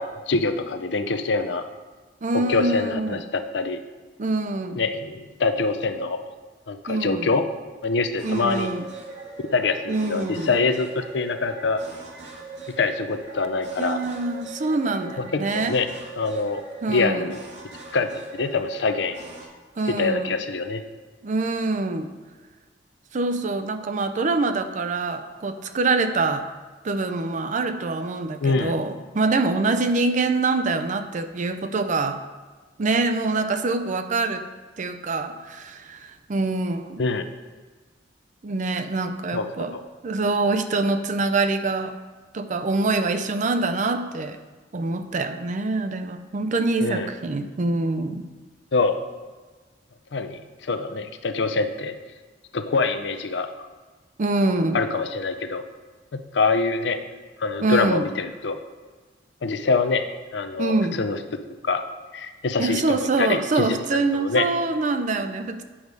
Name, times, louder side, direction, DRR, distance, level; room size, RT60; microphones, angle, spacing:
voice 1, 0.0-1.7 2.5-3.8 4.8-6.2 6.7-7.4 7.8-8.7 9.5-11.8 12.8-14.0 15.2-15.3 15.5-15.9 16.2-16.6 16.9-17.4 17.9-19.2 19.9-20.8 28.4-28.7 37.0-37.2 39.3-39.8 46.8-47.1 48.7-48.9 50.1-51.9 52.5-53.7 54.7-55.6 56.1-57.0 57.4-58.6 59.4-60.1 60.3-61.2 61.6-61.8 62.1-64.5, left 3 dB, 70° left, 9 dB, 0.6 m, -25 dB
voice 2, 2.2-3.2 4.2-4.8 6.9-7.3 8.2-8.8 9.9-10.5 13.8-15.8 16.8-17.3 19.8-20.3 21.2-22.1 23.1-26.5 26.8-32.2 32.8-34.5 34.8-37.0 38.4-39.7 40.0-42.0 42.3-44.4 44.7-48.3 54.2-54.8 57.6-58.1 60.6-61.0 62.6-65.6, right 3 dB, 45° right, 9 dB, 0.5 m, -25 dB
sound 1, 8.2-19.5, right 3 dB, 85° right, 1.7 m, -41 dB
8.6 x 4.7 x 5.3 m, 1.3 s
head